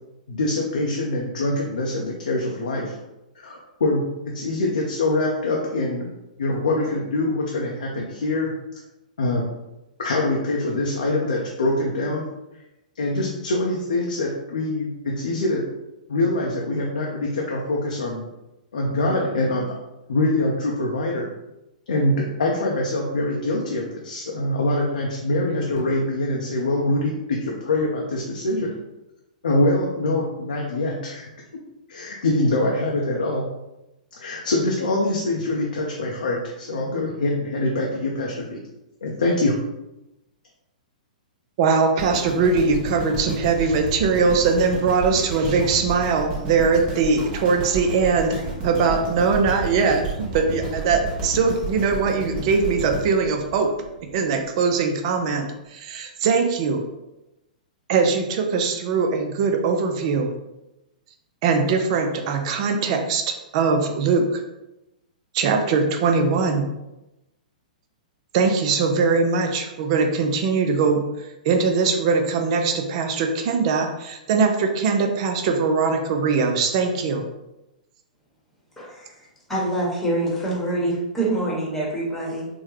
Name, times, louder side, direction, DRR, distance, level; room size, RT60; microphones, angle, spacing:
voice 1, 0.3-3.0 3.4-6.1 6.4-8.5 9.2-9.4 10.0-12.3 13.0-15.6 16.1-18.3 18.7-19.7 20.1-21.3 21.9-28.7 29.4-31.3 31.9-33.4 34.1-38.6 39.0-39.6, left 2 dB, 75° left, -2 dB, 0.6 m, -24 dB
voice 2, 41.6-48.4 48.6-53.7 54.1-56.8 57.9-60.3 61.4-64.4 65.3-66.6 68.3-77.2, right 4 dB, 45° right, 4 dB, 0.5 m, -21 dB
sound 1, 42.0-54.2 54.7-54.8, right 2 dB, 20° right, 0.8 m, -31 dB
voice 3, 78.8-79.1 79.5-82.5, right 1 dB, 5° left, -5 dB, 1.1 m, -25 dB
3.5 x 2.1 x 3.1 m, 0.95 s
hypercardioid pair, 115°, 4 cm